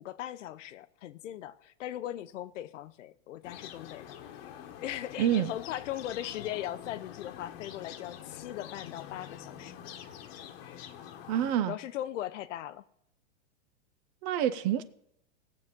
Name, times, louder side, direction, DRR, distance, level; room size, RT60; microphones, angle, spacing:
voice 1, 0.0-4.2 4.8-9.8 11.7-12.8, left 12 dB, 75° left, 0.8 m, -39 dB
sound 1, 3.4-11.6, left 10 dB, 50° left, 1.2 m, -46 dB
voice 2, 5.2-5.5 11.3-11.7 14.2-14.8, right 11 dB, 35° right, 0.5 m, -27 dB
18.5 x 7.4 x 3.7 m
supercardioid pair, 145°, 37 cm